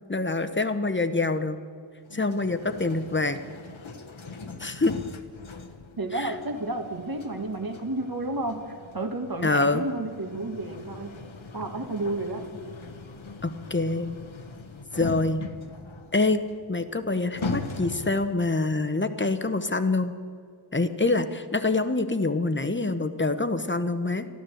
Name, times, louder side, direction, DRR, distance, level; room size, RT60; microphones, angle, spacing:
voice 1, 0.1-1.6 2.1-3.4 4.6-5.0 6.1-6.3 9.4-9.8 13.4-14.1 14.9-15.4 16.1-16.4 16.7-20.1 20.7-24.3, left 3 dB, 25° left, 10 dB, 0.9 m, -25 dB
sound 1, 2.1-18.5, left 3 dB, 80° left, 1.2 m, -40 dB
voice 2, 6.0-11.1 11.5-12.4, right 2 dB, 50° right, 5 dB, 1.5 m, -31 dB
13.0 x 11.5 x 7.9 m, 2.2 s
wide cardioid pair, 50°, 46 cm